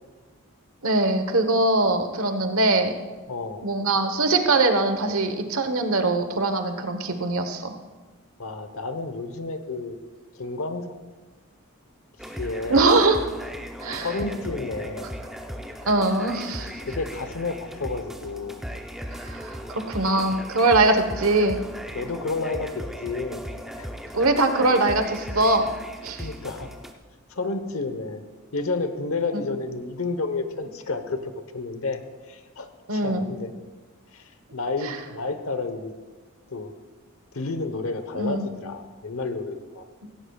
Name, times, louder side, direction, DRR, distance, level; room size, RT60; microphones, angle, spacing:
voice 1, 0.8-2.9 3.6-7.7 12.7-13.2 13.8-14.1 15.9-16.7 19.2-21.6 24.1-25.7 26.0-26.3 29.3-29.4 32.9-33.3 34.8-34.9 38.1-38.5, right 2 dB, 75° right, 7 dB, 1.2 m, -22 dB
voice 2, 3.3-3.7 8.4-10.0 10.4-10.9 12.4-12.9 14.0-15.1 16.8-18.6 21.9-23.4 23.8-23.9 26.2-26.7 27.3-28.2 28.5-32.0 32.3-33.5 34.1-35.9 36.5-36.7 37.3-39.8, left 3 dB, 75° left, 9 dB, 1.0 m, -31 dB
sound 1, 12.2-26.9, equal, ahead, 0.6 m, -37 dB
17.0 x 17.0 x 2.4 m, 1.3 s
head